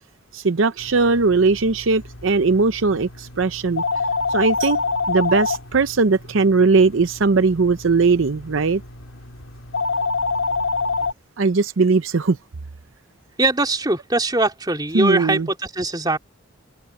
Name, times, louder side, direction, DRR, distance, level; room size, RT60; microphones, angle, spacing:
voice 1, 0.3-3.8 4.3-4.8 5.1-8.8 11.4-12.4 14.9-15.5, right 4 dB, 70° right, 0.7 m, -19 dB
sound 1, 0.8-11.1, left 4 dB, 80° left, 3.4 m, -27 dB
voice 2, 13.4-16.2, right 2 dB, 20° right, 3.3 m, -21 dB
head